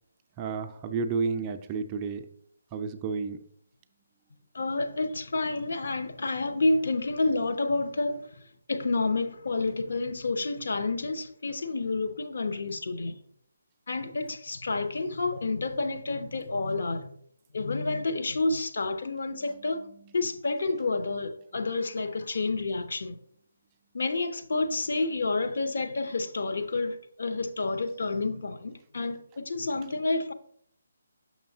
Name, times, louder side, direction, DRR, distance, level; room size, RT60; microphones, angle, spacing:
voice 1, 0.4-2.3 2.7-3.4, right 5 dB, 20° right, 0.4 m, -31 dB
voice 2, 4.5-8.3 8.7-13.1 13.9-17.1 17.5-19.8 20.1-23.2 23.9-30.3, left 3 dB, 55° left, 0.7 m, -29 dB
6.8 x 6.0 x 2.7 m
figure-of-eight pair, 145°, 0 cm